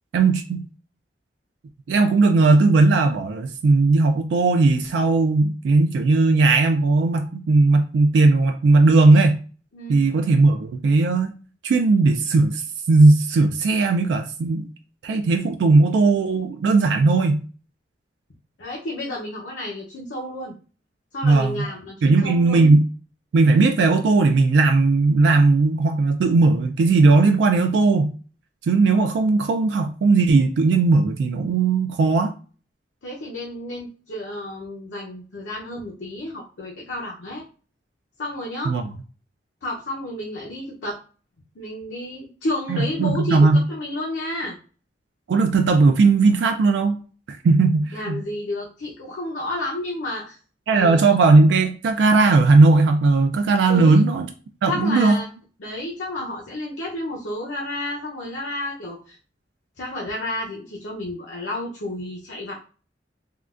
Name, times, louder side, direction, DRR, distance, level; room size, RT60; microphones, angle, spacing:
voice 1, 0.1-0.6 1.9-9.4 9.9-11.3 11.6-14.7 15.0-17.4 21.2-21.7 22.0-22.9 23.3-28.1 28.6-32.3 38.7-38.8 42.7-43.6 45.3-47.0 47.3-48.2 50.7-54.3 54.6-55.2, right 3 dB, 75° right, 0.3 m, -17 dB
voice 2, 9.7-10.1 18.6-20.5 21.1-22.6 33.0-37.4 38.2-38.8 39.6-41.0 41.6-44.6 47.9-50.4 50.7-51.1 53.7-54.0 54.7-55.3 55.6-59.2 59.8-62.7, left 1 dB, 85° left, 0.7 m, -31 dB
3.6 x 2.2 x 2.4 m
head